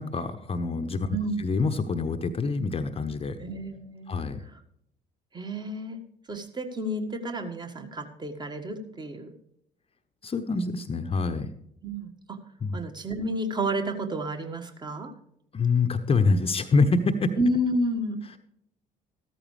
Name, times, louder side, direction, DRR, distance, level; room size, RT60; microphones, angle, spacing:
voice 1, 0.0-3.4 4.1-4.4 10.2-11.5 12.6-12.8 15.5-17.3, left 4 dB, 30° left, 9 dB, 0.9 m, -26 dB
voice 2, 1.1-1.5 3.4-4.2 4.5-4.6 5.3-6.0 6.3-9.3 11.8-12.4 12.7-15.1 17.4-18.2, right 1 dB, 20° right, 7 dB, 1.6 m, -30 dB
14.5 x 13.5 x 3.3 m, 0.74 s
figure-of-eight pair, 50°, 21 cm